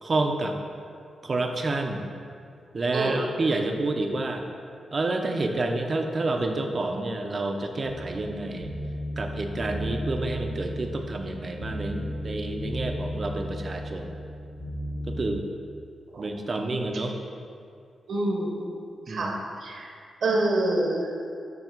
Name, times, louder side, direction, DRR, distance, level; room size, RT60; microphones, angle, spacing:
voice 1, 0.0-0.6 1.2-2.1 2.7-4.5 4.9-8.7 9.2-14.1 15.1-15.5 16.2-17.1 19.1-19.3, right 2 dB, 40° right, 4 dB, 0.6 m, -29 dB
voice 2, 2.9-3.2 16.1-16.2 18.1-18.7 19.1-19.9 20.2-21.1, right 2 dB, 70° right, -1 dB, 1.0 m, -26 dB
sound 1, 7.8-15.3, equal, 45° left, 1.5 m, -34 dB
7.1 x 2.9 x 5.9 m, 2.4 s
cardioid pair, 100°, 0 cm